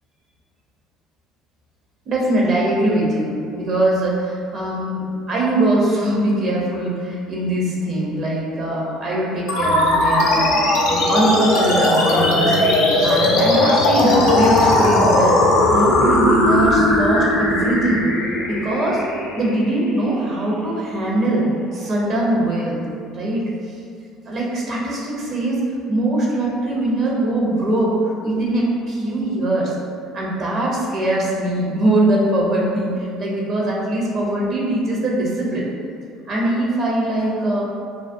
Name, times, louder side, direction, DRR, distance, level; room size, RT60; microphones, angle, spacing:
voice 1, 2.1-12.6 13.0-15.4 15.7-18.0 18.4-19.0 19.3-21.5 21.7-22.8 23.1-23.8 24.3-29.7 30.1-35.7 36.3-37.6, right 1 dB, 50° right, -4 dB, 0.6 m, -21 dB
sound 1, 9.5-20.4, left 1 dB, 75° left, 0.5 m, -18 dB
2.3 x 2.1 x 2.5 m, 2.2 s
hypercardioid pair, 70°, 0 cm